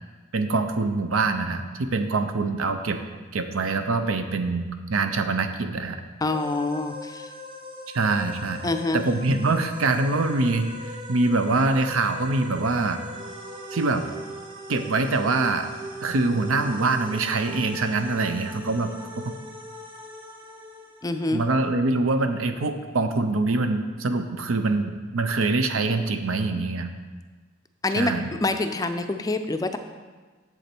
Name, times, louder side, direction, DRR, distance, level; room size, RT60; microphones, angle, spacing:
voice 1, 0.3-3.0 3.3-6.0 7.9-8.7 8.9-13.0 13.7-14.0 14.7-15.7 16.0-19.2 21.3-26.9 28.0-28.3, right 3 dB, 90° right, 8 dB, 0.7 m, -24 dB
voice 2, 6.2-7.3 8.6-9.1 21.0-21.4 27.8-28.1 28.4-29.8, left 2 dB, 20° left, 7 dB, 0.4 m, -26 dB
sound 1, 6.3-21.7, equal, 25° right, 0.8 m, -40 dB
8.2 x 7.2 x 4.4 m, 1.4 s
head